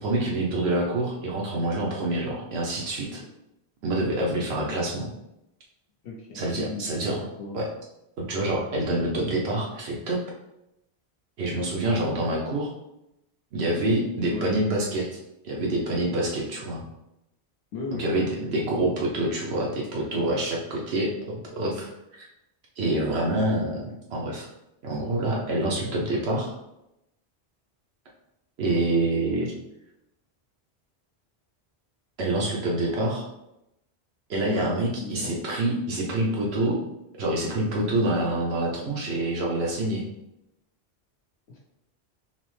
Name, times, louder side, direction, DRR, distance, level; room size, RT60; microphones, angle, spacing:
voice 1, 0.0-3.2 3.8-5.1 6.3-7.2 7.5-7.6 8.2-10.2 11.4-12.7 13.5-15.1 15.4-16.8 18.0-22.3 22.8-24.5 24.8-26.5 28.6-29.5 32.2-33.2 34.3-36.8 37.2-40.0, right 1 dB, 75° right, -3 dB, 1.0 m, -26 dB
voice 2, 6.0-6.8 7.4-7.6 14.2-14.6 17.7-18.3 34.5-34.7 35.0-35.3 41.5-41.6, left 4 dB, 75° left, -2 dB, 1.0 m, -35 dB
5.6 x 2.0 x 3.1 m, 0.87 s
omnidirectional pair, 1.1 m